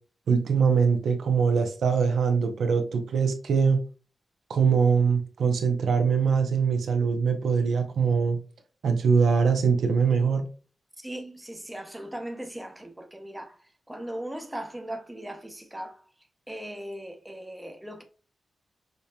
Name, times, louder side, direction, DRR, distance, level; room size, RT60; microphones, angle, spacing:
voice 1, 0.3-3.8 4.5-8.4 8.8-10.5, right 6 dB, 85° right, 0.7 m, -23 dB
voice 2, 11.0-13.6 13.9-16.0 16.5-18.0, right 1 dB, 5° right, 0.6 m, -38 dB
5.1 x 2.8 x 2.2 m
wide cardioid pair, 135°, 0 cm